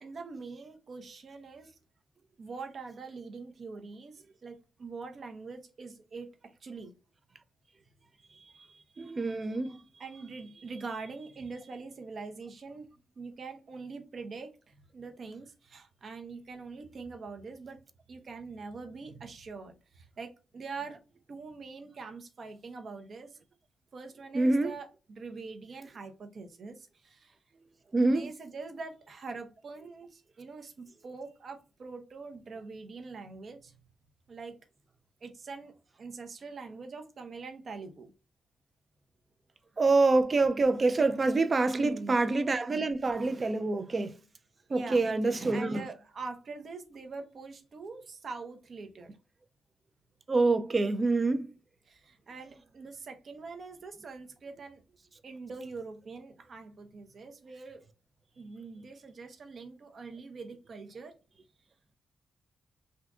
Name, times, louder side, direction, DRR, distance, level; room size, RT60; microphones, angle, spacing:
voice 1, 0.0-1.8 2.4-6.9 8.2-17.8 18.1-21.0 21.3-23.4 23.9-27.3 28.0-33.8 34.3-34.6 35.2-38.1 41.7-42.2 44.7-45.1 45.5-49.2 51.9-54.8 55.2-57.8 58.4-61.2, right 4 dB, 55° right, 0.8 m, -44 dB
voice 2, 9.0-9.7 24.3-24.7 27.9-28.3 39.8-44.1 44.7-45.8 50.3-51.5, right 3 dB, 35° right, 0.5 m, -26 dB
3.6 x 2.6 x 2.3 m
cardioid pair, 105°, 0 cm